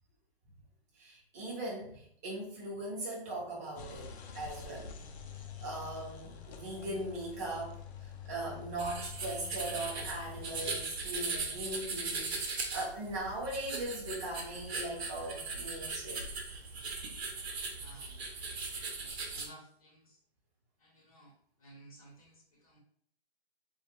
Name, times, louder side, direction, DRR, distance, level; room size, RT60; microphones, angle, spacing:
voice 1, 0.9-4.9 5.6-16.3, right 1 dB, 15° right, -4 dB, 0.5 m, -40 dB
sound 1, 3.7-10.9, left 7 dB, 90° left, 0.5 m, -47 dB
sound 2, 8.8-19.5, right 4 dB, 75° right, 0.7 m, -39 dB
voice 2, 17.8-18.2 19.0-20.2 20.8-21.3 21.6-22.8, right 1 dB, 35° left, -1 dB, 0.6 m, -56 dB
2.2 x 2.1 x 2.8 m, 0.65 s
hypercardioid pair, 150°, 32 cm